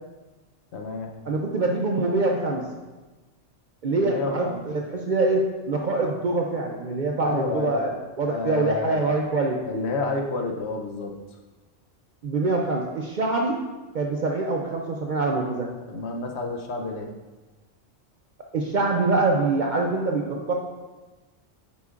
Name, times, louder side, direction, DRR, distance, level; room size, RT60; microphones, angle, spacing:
voice 1, 0.7-1.1 4.0-4.6 7.2-7.8 8.3-9.1 9.6-11.1 15.9-17.1, left 3 dB, 65° left, 2 dB, 0.9 m, -30 dB
voice 2, 1.3-2.7 3.8-7.9 8.2-9.6 12.2-13.6 13.9-15.7 18.5-20.5, right 3 dB, 55° right, 0 dB, 0.5 m, -24 dB
8.2 x 5.1 x 2.4 m, 1.2 s
omnidirectional pair, 1.3 m